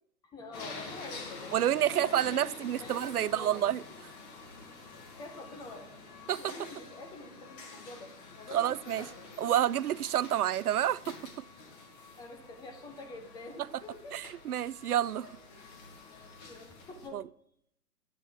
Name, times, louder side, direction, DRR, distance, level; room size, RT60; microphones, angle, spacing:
voice 1, 0.2-1.6 1.9-3.6 5.1-5.9 6.4-9.5 12.2-14.2 15.2-15.3 16.1-17.2, left 2 dB, 10° left, 1.0 m, -47 dB
sound 1, 0.5-17.1, left 3 dB, 25° left, 2.1 m, -48 dB
voice 2, 1.5-3.8 6.3-6.5 8.5-9.1 9.4-11.2 14.1-15.3 17.1-17.2, right 11 dB, 70° right, 0.5 m, -29 dB
11.0 x 9.1 x 5.0 m
figure-of-eight pair, 130°, 47 cm